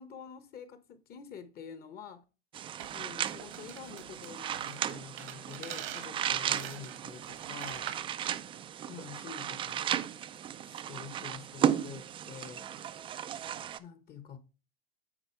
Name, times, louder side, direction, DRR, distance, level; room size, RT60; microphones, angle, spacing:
voice 1, 0.0-2.2 2.9-7.9 8.9-9.9 10.6-12.7 13.8-14.4, left 7 dB, 30° left, 0.9 m, -47 dB
sound 1, 2.5-13.8, right 10 dB, 20° right, 0.3 m, -35 dB
sound 2, 2.8-8.1, right 12 dB, 70° right, 1.3 m, -45 dB
9.0 x 4.2 x 4.4 m
hypercardioid pair, 110°, 30 cm